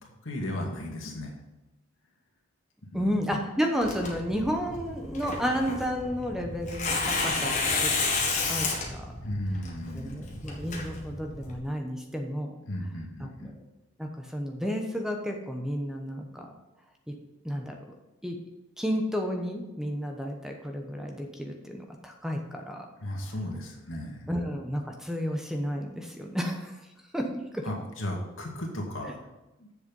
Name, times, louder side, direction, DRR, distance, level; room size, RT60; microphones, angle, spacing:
voice 1, 0.0-1.4 2.9-3.2 9.2-10.4 12.7-13.5 23.0-24.3 27.6-29.2 29.6-29.7, left 1 dB, 85° left, 0 dB, 2.2 m, -35 dB
voice 2, 2.9-7.5 7.8-7.9 8.3-9.0 9.9-12.5 13.2-13.5 14.0-16.5 17.1-17.2 17.4-17.8 18.2-18.4 18.8-22.9 24.3-26.7 27.1-27.6, equal, 5° right, 2 dB, 1.0 m, -32 dB
Tearing, 3.8-11.6, left 3 dB, 40° left, 1.9 m, -31 dB
7.9 x 6.9 x 5.4 m, 0.99 s
head